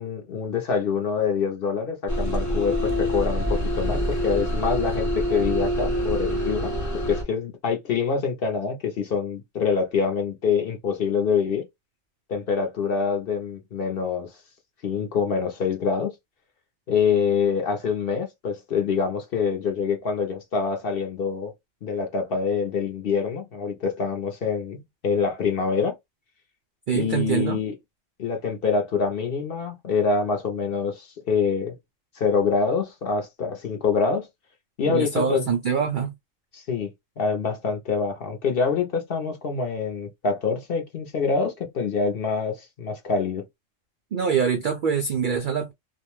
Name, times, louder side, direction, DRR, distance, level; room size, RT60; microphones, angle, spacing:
voice 1, 0.0-6.7 7.0-11.6 12.3-14.3 14.8-16.1 16.9-21.5 21.8-26.0 26.9-27.7 28.2-31.7 32.2-34.3 34.8-35.5 36.5-36.9 37.2-43.4, left 5 dB, 55° left, 0.7 m, -25 dB
sound 1, 2.1-7.2, equal, 20° left, 0.5 m, -26 dB
voice 2, 26.9-27.6 34.8-36.1 44.1-45.7, right 6 dB, 80° right, 0.4 m, -24 dB
2.5 x 2.1 x 3.0 m
omnidirectional pair, 1.4 m